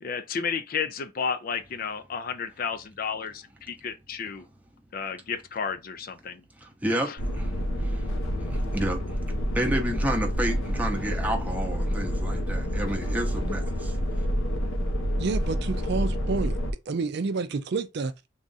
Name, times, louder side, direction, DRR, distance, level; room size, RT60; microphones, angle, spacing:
voice 1, 0.0-4.5 4.9-6.4 7.1-7.2, left 6 dB, 45° left, 0.4 m, -32 dB
voice 2, 6.6-7.5 7.8-8.0 8.4-9.0 9.5-13.9, right 1 dB, 10° right, 0.7 m, -30 dB
sound 1, 7.2-16.7, equal, 90° left, 1.0 m, -28 dB
voice 3, 15.2-16.6 16.9-18.1, right 4 dB, 55° right, 0.4 m, -29 dB
3.6 x 2.4 x 3.9 m
head